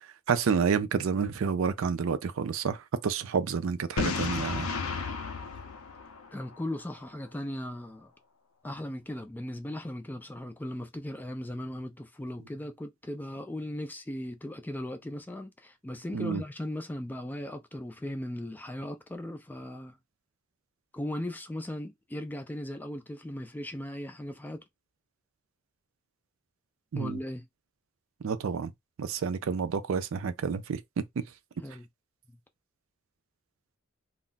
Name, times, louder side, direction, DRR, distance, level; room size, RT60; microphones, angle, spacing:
voice 1, 0.3-2.8 3.0-4.7 16.1-16.4 26.9-27.2 28.2-28.7 29.0-31.0, right 6 dB, 65° right, 0.4 m, -29 dB
Boom, 4.0-6.8, left 5 dB, 80° left, 0.5 m, -33 dB
voice 2, 6.3-8.1 8.6-20.0 20.9-24.6 27.0-27.5 31.6-31.9 32.3-32.4, left 1 dB, 10° left, 0.3 m, -38 dB
2.3 x 2.0 x 3.8 m
head